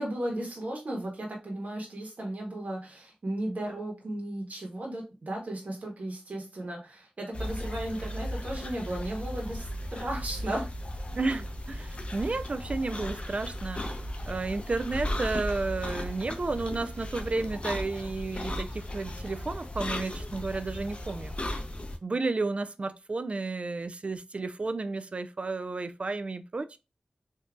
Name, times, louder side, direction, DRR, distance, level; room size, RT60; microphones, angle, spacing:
voice 1, 0.0-10.7, right 1 dB, 65° right, 1.1 m, -35 dB
sound 1, 7.3-22.0, left 1 dB, 45° left, 0.6 m, -36 dB
voice 2, 11.1-13.8 14.3-21.3 22.0-26.8, right 3 dB, 45° right, 0.3 m, -32 dB
3.6 x 2.6 x 2.3 m
wide cardioid pair, 60°, 3 cm